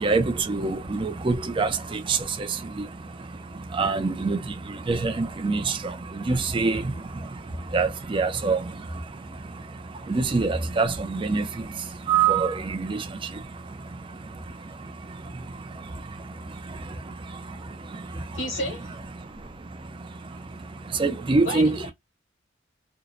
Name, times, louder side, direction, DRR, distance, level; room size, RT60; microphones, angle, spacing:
voice 1, 0.0-18.6 19.1-21.8, right 4 dB, 25° right, 0.4 m, -28 dB
voice 2, 18.3-19.0 21.4-21.9, left 1 dB, 85° left, 0.8 m, -31 dB
2.5 x 2.0 x 2.4 m
head